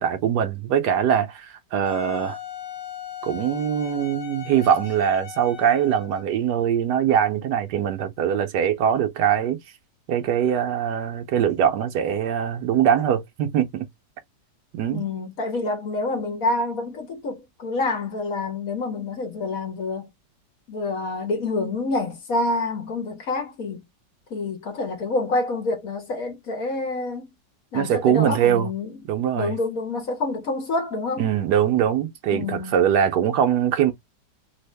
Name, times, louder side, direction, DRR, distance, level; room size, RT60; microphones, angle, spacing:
voice 1, 0.0-2.4 3.2-9.6 10.1-13.9 14.7-15.0 27.7-28.7 29.1-29.5 31.2-33.9, right 9 dB, 80° right, 1.3 m, -22 dB
Wind instrument woodwind instrument, 1.9-6.4, left 10 dB, 75° left, 1.4 m, -38 dB
voice 2, 14.9-20.1 20.7-23.8 24.3-27.3 27.7-29.0 29.3-31.2 32.3-32.8, left 2 dB, 55° left, 1.5 m, -27 dB
3.5 x 2.4 x 3.2 m
omnidirectional pair, 1.8 m